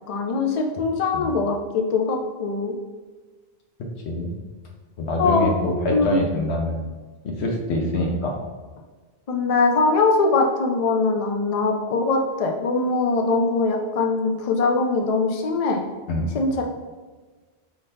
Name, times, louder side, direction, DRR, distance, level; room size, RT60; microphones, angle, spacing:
voice 1, 0.1-2.7 5.2-5.5 5.9-6.2 9.3-15.8 16.3-16.6, left 3 dB, 50° left, 2 dB, 0.5 m, -22 dB
voice 2, 5.0-6.9 7.2-8.4 16.1-16.3, left 1 dB, 80° left, 1 dB, 1.1 m, -25 dB
5.8 x 2.6 x 3.3 m, 1.4 s
omnidirectional pair, 1.1 m